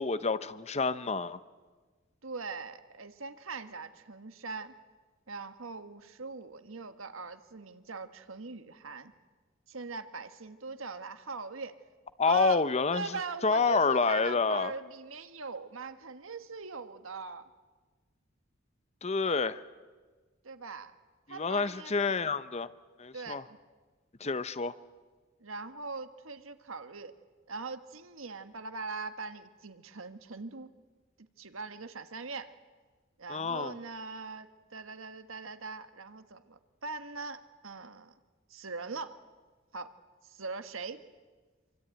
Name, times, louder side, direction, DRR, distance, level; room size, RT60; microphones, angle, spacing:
voice 1, 0.0-1.4 12.2-14.7 19.0-19.6 21.3-22.7 23.0-23.4 24.2-24.7 33.3-33.8, left 4 dB, 30° left, 14 dB, 0.8 m, -28 dB
voice 2, 2.2-4.7 5.3-9.1 9.7-11.7 12.2-12.6 12.9-17.5 20.4-20.9 21.3-22.2 23.1-23.5 25.4-27.1 27.5-30.7 31.4-32.5 33.2-38.1 38.5-39.1 39.7-39.9 40.2-41.0, right 4 dB, 80° right, 10 dB, 1.5 m, -41 dB
26.5 x 24.0 x 9.1 m, 1.4 s
head